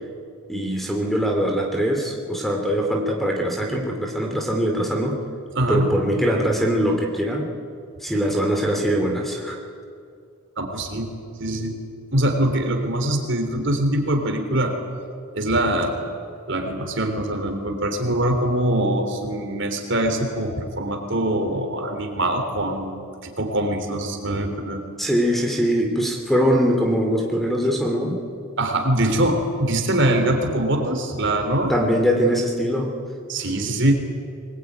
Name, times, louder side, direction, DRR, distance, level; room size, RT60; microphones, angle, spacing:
voice 1, 0.5-5.2 5.7-7.5 8.0-9.6 25.0-28.2 31.7-32.9, equal, ahead, 2 dB, 2.8 m, -22 dB
voice 2, 5.6-5.9 10.6-11.1 11.4-11.8 12.1-14.8 15.3-15.9 16.5-23.0 23.2-24.8 28.6-31.7 33.3-33.9, right 1 dB, 55° right, 5 dB, 3.4 m, -23 dB
24.5 x 20.5 x 9.5 m, 2.4 s
head